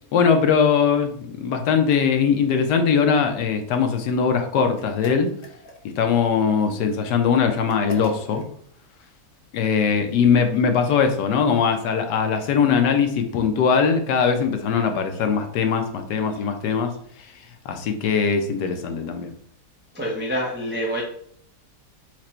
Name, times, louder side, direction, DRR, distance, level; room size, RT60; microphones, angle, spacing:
voice 1, 0.1-5.3 6.0-8.4 9.5-16.9 17.6-19.3, left 6 dB, 80° left, 5 dB, 1.3 m, -21 dB
sound 1, 4.7-6.1 7.7-8.5, left 1 dB, 50° left, 0.7 m, -41 dB
voice 2, 19.9-21.0, equal, 10° right, -3 dB, 0.5 m, -26 dB
4.7 x 2.5 x 4.3 m, 0.63 s
omnidirectional pair, 1.8 m